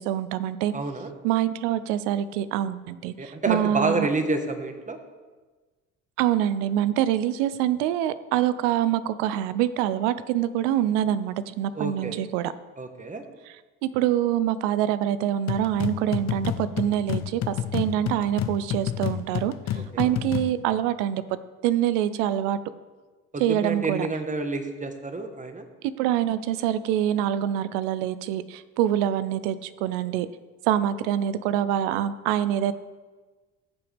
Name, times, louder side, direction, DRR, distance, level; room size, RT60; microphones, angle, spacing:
voice 1, 0.0-0.7 1.2-4.1 6.2-12.5 13.5-13.6 13.8-19.5 20.0-21.2 21.6-22.6 23.4-24.1 26.0-30.3 30.7-32.7, right 11 dB, 85° right, 14 dB, 0.6 m, -25 dB
voice 2, 0.7-1.1 3.2-5.0 11.7-12.1 12.8-13.2 19.9-20.1 23.3-25.6, right 3 dB, 20° right, 7 dB, 1.3 m, -29 dB
sound 1, 15.5-20.6, left 10 dB, 50° left, 0.7 m, -30 dB
14.5 x 7.0 x 3.4 m, 1.3 s
supercardioid pair, 70°, 35 cm